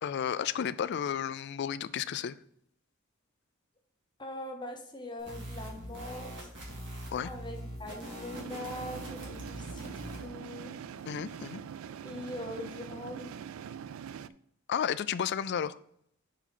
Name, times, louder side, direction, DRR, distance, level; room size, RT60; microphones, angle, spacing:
voice 1, 0.0-2.4 7.1-7.3 11.1-11.6 14.7-15.8, left 8 dB, 55° left, 0.3 m, -32 dB
voice 2, 4.2-6.5 7.2-10.7 12.0-13.3, left 1 dB, 20° left, 0.9 m, -42 dB
sound 1, 5.2-10.2, right 1 dB, 60° right, 2.3 m, -43 dB
sound 2, 8.3-14.3, right 8 dB, 75° right, 0.3 m, -43 dB
5.5 x 4.8 x 5.8 m
head